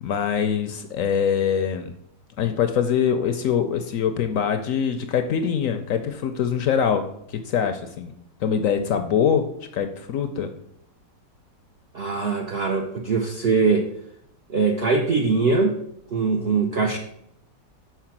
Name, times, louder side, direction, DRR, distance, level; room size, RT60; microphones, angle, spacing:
voice 1, 0.0-1.9 2.4-8.1 8.4-9.4 9.7-10.5, left 7 dB, 70° left, 8 dB, 0.8 m, -23 dB
voice 2, 11.9-13.9 14.5-15.7 16.1-17.0, right 4 dB, 65° right, 2 dB, 0.6 m, -22 dB
5.8 x 4.6 x 5.9 m, 0.73 s
omnidirectional pair, 1.8 m